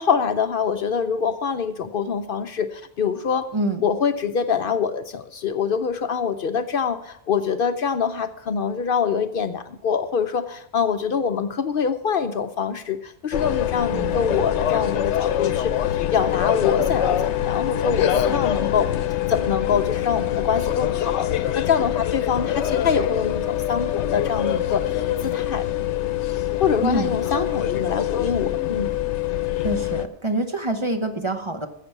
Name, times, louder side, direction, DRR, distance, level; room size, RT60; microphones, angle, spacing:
voice 1, 0.0-3.5 3.8-18.9 19.3-25.7 26.6-28.9, left 6 dB, 60° left, 9 dB, 0.7 m, -25 dB
voice 2, 3.5-3.8 13.9-14.4 26.8-27.5 29.6-31.7, right 1 dB, 30° right, 6 dB, 0.8 m, -26 dB
sound 1, 13.3-30.1, left 11 dB, 85° left, 1.0 m, -24 dB
14.0 x 7.4 x 5.8 m, 0.76 s
omnidirectional pair, 1.2 m